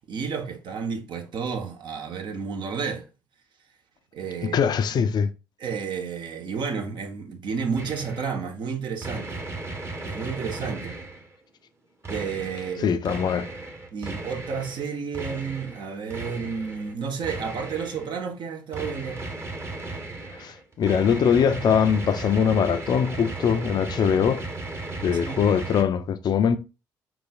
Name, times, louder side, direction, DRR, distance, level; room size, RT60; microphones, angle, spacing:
voice 1, 0.0-3.0 4.1-4.6 5.6-9.4 10.0-10.9 12.1-13.0 13.9-19.2 25.2-25.5, right 6 dB, 50° right, 0.9 m, -31 dB
voice 2, 4.5-5.3 12.8-13.5 20.4-24.5 25.0-26.6, left 7 dB, 45° left, 0.5 m, -22 dB
sound 1, 7.8-8.4 9.0-11.4 12.0-14.9 15.1-16.9 17.2-18.1 18.7-25.8, right 2 dB, 25° right, 1.1 m, -36 dB
4.7 x 3.9 x 2.5 m
figure-of-eight pair, 50°, 10 cm